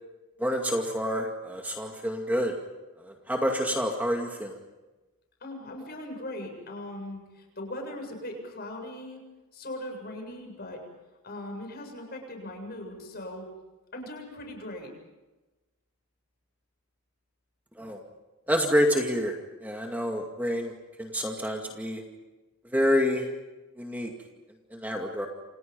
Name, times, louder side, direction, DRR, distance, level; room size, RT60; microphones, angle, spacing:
voice 1, 0.4-2.6 3.0-4.6 17.8-18.0 18.5-19.3 19.6-20.7 21.0-22.0 22.7-23.3 23.8-24.1 24.7-25.3, equal, 10° right, 2 dB, 2.2 m, -27 dB
voice 2, 5.4-9.2 9.5-10.8 11.2-13.5 13.9-14.9, left 1 dB, 45° left, 3 dB, 7.3 m, -39 dB
29.0 x 28.5 x 5.4 m, 1.1 s
head